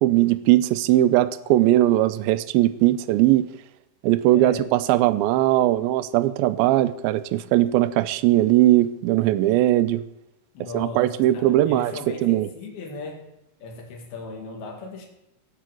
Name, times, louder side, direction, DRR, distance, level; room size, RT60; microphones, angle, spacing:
voice 1, 0.0-3.5 4.0-10.0 10.7-12.5, right 14 dB, 80° right, 14 dB, 2.2 m, -19 dB
voice 2, 4.3-4.7 10.5-13.3 13.6-15.1, left 3 dB, 65° left, 0 dB, 4.1 m, -37 dB
17.0 x 6.1 x 7.7 m, 0.90 s
omnidirectional pair, 4.7 m